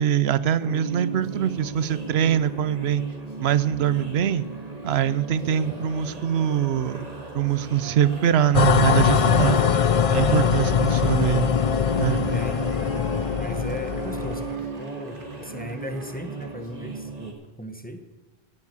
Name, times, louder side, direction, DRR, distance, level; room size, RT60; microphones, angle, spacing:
voice 1, 0.0-3.0 3.4-4.5 4.8-7.0 7.3-9.6 10.1-11.5 12.0-12.2, right 9 dB, 85° right, 16 dB, 0.9 m, -23 dB
sound 1, 0.6-17.3, right 3 dB, 40° right, 2.0 m, -36 dB
Cheering / Applause / Crowd, 7.7-16.7, right 3 dB, 55° right, 1.6 m, -45 dB
sound 2, 8.5-14.6, left 7 dB, 45° left, 0.5 m, -22 dB
voice 2, 9.2-9.8 12.3-12.8 13.4-18.0, equal, 10° left, 7 dB, 1.0 m, -38 dB
16.5 x 7.3 x 8.3 m, 1.2 s
omnidirectional pair, 1.0 m